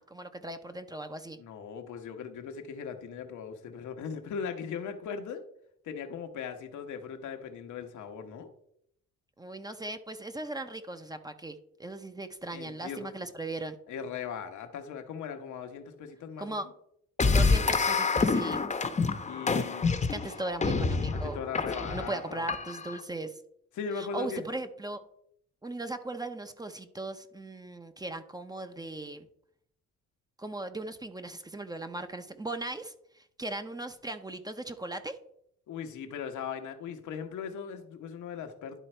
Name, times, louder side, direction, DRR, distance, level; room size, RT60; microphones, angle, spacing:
voice 1, 0.0-1.4 9.4-13.8 16.4-16.7 17.3-18.6 20.1-23.4 23.9-25.0 25.6-29.3 30.4-35.2, right 2 dB, 15° right, 8 dB, 0.7 m, -38 dB
voice 2, 1.4-5.4 5.8-8.5 12.5-13.1 13.9-16.7 19.3-20.3 21.1-22.4 23.7-24.4 35.7-38.8, left 6 dB, 75° left, 6 dB, 1.1 m, -39 dB
sound 1, 17.2-23.0, left 4 dB, 25° left, 0.8 m, -27 dB
11.0 x 3.9 x 4.4 m, 0.72 s
cardioid pair, 90°, 30 cm